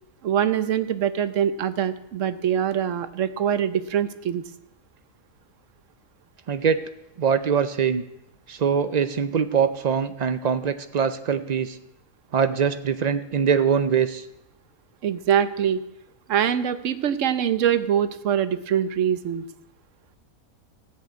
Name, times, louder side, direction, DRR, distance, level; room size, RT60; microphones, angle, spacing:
voice 1, 0.2-4.4 15.0-15.8 16.3-19.4, right 9 dB, 65° right, 13 dB, 1.0 m, -23 dB
voice 2, 6.5-6.8 7.2-8.0 8.5-11.8 12.3-14.3, right 7 dB, 90° right, 11 dB, 0.3 m, -23 dB
14.5 x 6.6 x 9.1 m, 0.88 s
omnidirectional pair, 1.5 m